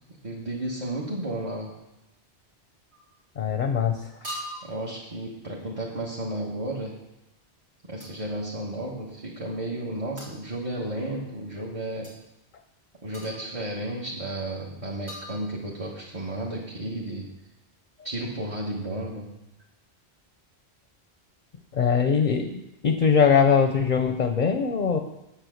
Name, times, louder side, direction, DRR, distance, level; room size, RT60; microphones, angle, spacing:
voice 1, 0.2-1.8 4.6-7.0 7.9-12.2 13.0-17.3 18.0-19.3, right 1 dB, 30° right, -4 dB, 1.5 m, -33 dB
sound 1, 2.9-3.2 4.2-4.9 8.0-8.2 10.2-10.4 12.0-12.2 13.1-13.7 15.1-15.9, equal, 85° right, 2.9 m, -40 dB
voice 2, 3.4-4.0 21.7-25.0, left 6 dB, 45° left, 6 dB, 0.8 m, -22 dB
8.1 x 8.0 x 6.4 m, 0.92 s
omnidirectional pair, 1.1 m